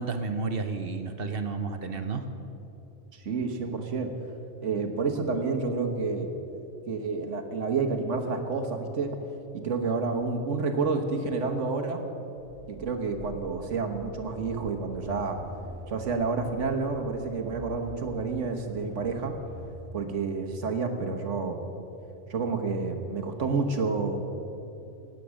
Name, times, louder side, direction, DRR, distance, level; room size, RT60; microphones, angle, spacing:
voice 1, 0.0-2.2, right 4 dB, 55° right, 7 dB, 1.0 m, -31 dB
voice 2, 3.1-4.1 4.6-6.3 6.9-9.1 9.5-12.0 12.7-15.4 15.9-19.3 19.9-21.6 22.3-24.2, right 4 dB, 75° right, 5 dB, 1.6 m, -29 dB
sound 1, 12.4-19.7, left 1 dB, 55° left, 2.5 m, -46 dB
17.0 x 9.4 x 6.3 m, 2.9 s
omnidirectional pair, 1.3 m